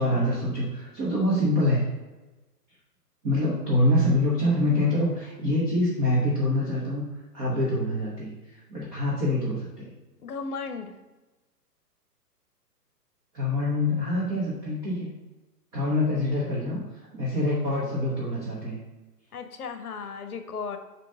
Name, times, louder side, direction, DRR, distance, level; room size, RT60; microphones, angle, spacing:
voice 1, 0.0-1.8 3.2-7.0 7.3-9.9 13.3-15.1 15.7-16.8 17.1-18.8, left 1 dB, 15° right, -6 dB, 0.6 m, -25 dB
voice 2, 10.2-10.9 19.3-20.8, left 5 dB, 65° left, 8 dB, 0.8 m, -35 dB
7.1 x 2.8 x 5.3 m, 1.1 s
figure-of-eight pair, 120°, 49 cm